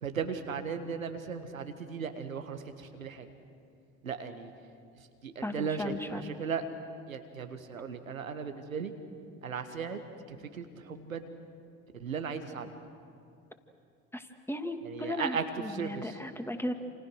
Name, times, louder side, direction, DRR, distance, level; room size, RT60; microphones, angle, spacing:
voice 1, 0.0-3.3 4.0-4.5 4.9-6.6 7.1-8.9 9.4-10.0 10.3-11.3 11.9-12.7 14.8-16.2, right 6 dB, 90° right, 8 dB, 1.6 m, -37 dB
voice 2, 5.4-6.2 14.1-16.7, left 1 dB, 5° left, 6 dB, 2.5 m, -36 dB
29.0 x 28.0 x 6.4 m, 2.4 s
figure-of-eight pair, 55°, 40 cm